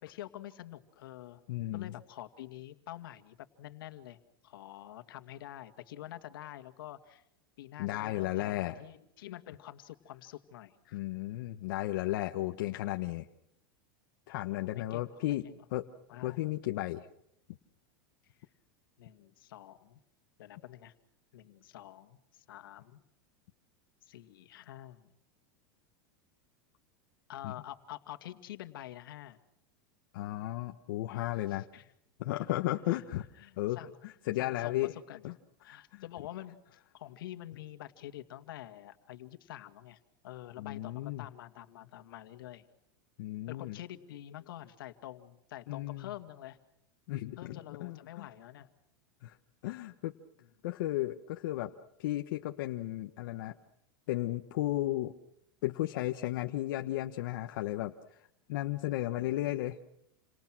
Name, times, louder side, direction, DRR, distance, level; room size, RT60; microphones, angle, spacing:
voice 1, 0.0-1.4 1.7-7.2 7.6-11.0 12.7-12.8 14.4-15.5 16.1-16.4 19.0-20.0 20.4-20.9 21.3-23.0 24.1-25.1 27.3-29.4 31.5-31.9 32.9-33.0 33.4-33.9 34.4-35.2 35.6-36.6 36.9-42.6 43.5-46.6 47.4-48.7 59.2-59.5, left 13 dB, 85° left, 8 dB, 2.2 m, -47 dB
voice 2, 1.5-1.9 7.8-8.8 10.9-13.2 14.3-15.4 15.7-15.9 16.2-17.1 27.4-27.5 30.1-31.7 32.2-33.2 33.6-34.9 35.2-35.3 35.7-36.0 40.6-41.2 43.2-43.8 45.7-46.1 47.1-48.3 49.2-49.4 49.6-50.1 50.6-51.7 52.0-53.5 54.1-55.1 55.6-58.2 58.5-59.9, left 16 dB, 65° left, 4 dB, 1.3 m, -34 dB
29.5 x 26.0 x 6.2 m, 0.75 s
supercardioid pair, 150°, 11 cm